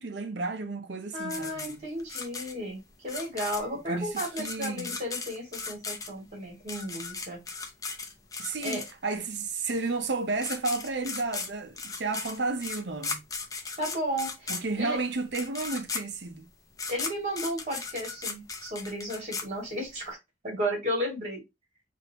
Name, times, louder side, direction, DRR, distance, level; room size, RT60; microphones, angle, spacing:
voice 1, 0.0-1.8 3.9-4.1 4.4-5.0 8.4-13.2 14.5-16.5, right 3 dB, 75° right, 0.7 m, -32 dB
voice 2, 1.1-7.4 8.6-8.8 13.8-15.0 16.9-20.2 20.4-21.4, equal, 40° right, 2.5 m, -34 dB
sound 1, 1.3-9.2 10.1-10.2 10.4-20.1, left 4 dB, 20° left, 0.6 m, -37 dB
5.0 x 2.6 x 2.9 m
head